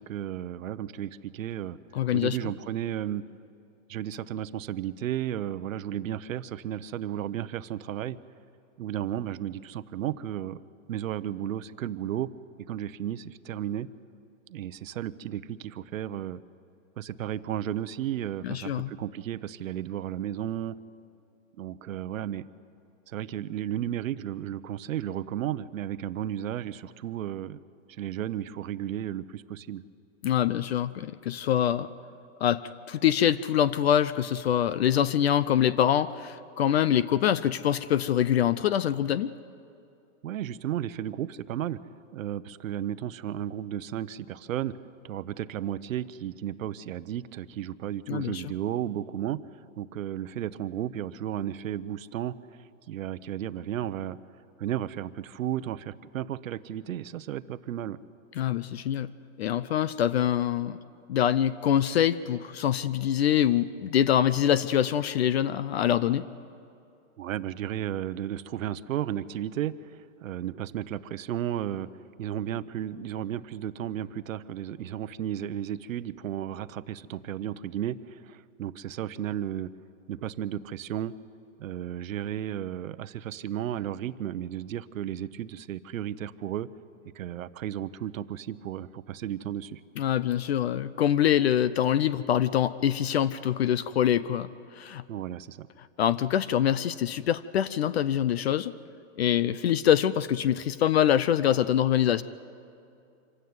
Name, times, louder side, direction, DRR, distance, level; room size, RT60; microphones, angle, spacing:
voice 1, 0.0-1.8 2.1-3.2 3.9-8.2 8.8-10.6 10.9-12.3 12.7-13.9 14.5-16.4 17.0-20.8 21.6-22.4 23.1-27.6 28.0-29.8 40.2-41.8 42.1-44.7 45.0-49.4 49.8-52.3 52.9-54.2 54.6-58.0 67.2-71.9 72.2-79.7 80.1-81.1 81.6-86.7 87.1-89.8 95.1-95.7, right 11 dB, 90° right, 14 dB, 0.9 m, -33 dB
voice 2, 1.9-2.4 18.4-18.9 30.2-31.9 32.4-39.3 48.1-48.5 58.4-59.1 59.4-60.8 61.1-66.3 90.0-95.0 96.0-98.7 99.2-102.2, left 10 dB, 55° left, 16 dB, 0.6 m, -25 dB
26.0 x 16.5 x 9.6 m, 2.6 s
supercardioid pair, 175°, 39 cm